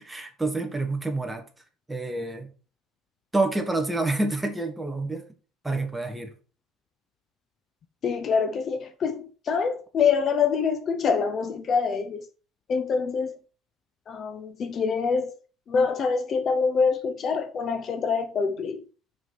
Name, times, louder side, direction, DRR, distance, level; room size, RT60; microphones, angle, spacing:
voice 1, 0.0-1.4 1.9-2.5 3.3-5.2 5.6-6.3, right 2 dB, 10° right, 1.5 m, -28 dB
voice 2, 8.0-12.2 12.7-13.3 14.1-15.3 15.7-18.8, left 5 dB, 40° left, 0.8 m, -25 dB
6.0 x 5.0 x 5.9 m
cardioid pair, 130°, 0 cm